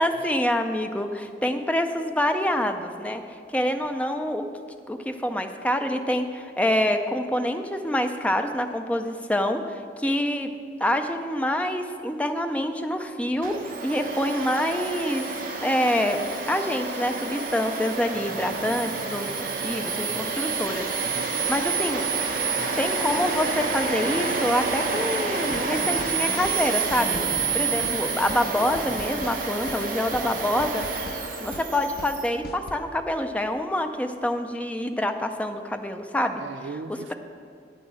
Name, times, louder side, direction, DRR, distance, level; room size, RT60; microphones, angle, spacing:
voice 1, 0.0-3.2 3.5-4.5 4.9-10.5 10.8-15.3 15.6-20.9 21.5-22.0 22.8-27.2 27.5-30.8 31.4-36.4 37.1-37.2, left 1 dB, 5° left, 6 dB, 0.5 m, -26 dB
Domestic sounds home sounds, 13.4-32.3, right 4 dB, 50° right, 1.0 m, -29 dB
sound 1, 18.1-30.7, left 1 dB, 85° left, 1.2 m, -42 dB
voice 2, 21.0-21.9 36.4-37.1, right 4 dB, 90° right, 13 dB, 0.4 m, -39 dB
sound 2, 25.5-25.7 26.0-26.1 26.4-26.6 26.9-27.5 27.8-28.0 28.3-28.4 28.7-29.4 29.7-29.8 30.1-30.3 30.6-31.2 31.5-31.7 32.0-32.1 32.4-32.8, left 2 dB, 55° left, 0.7 m, -40 dB
9.0 x 6.3 x 7.6 m, 2.3 s
head